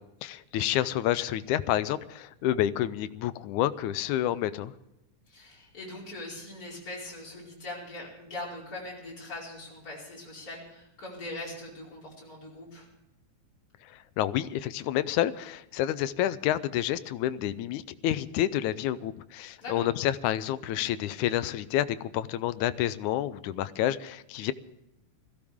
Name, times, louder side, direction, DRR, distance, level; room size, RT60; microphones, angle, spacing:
voice 1, 0.0-4.7 14.2-24.5, left 12 dB, 80° left, 14 dB, 2.0 m, -29 dB
voice 2, 5.3-12.9 19.6-19.9, left 2 dB, 25° left, -4 dB, 5.3 m, -41 dB
21.0 x 15.5 x 3.6 m, 0.89 s
omnidirectional pair, 3.6 m